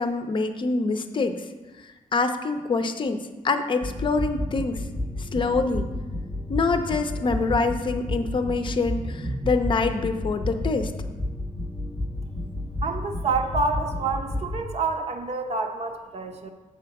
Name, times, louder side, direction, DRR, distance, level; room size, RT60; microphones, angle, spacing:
voice 1, 0.0-1.4 2.1-4.8 5.2-5.9 6.5-10.9, left 3 dB, 35° left, 7 dB, 0.6 m, -25 dB
sound 1, 3.8-14.6, left 1 dB, 15° right, 0.8 m, -31 dB
voice 2, 12.8-16.5, right 4 dB, 50° right, 4 dB, 0.9 m, -28 dB
8.0 x 4.3 x 5.9 m, 1.2 s
wide cardioid pair, 135°, 14 cm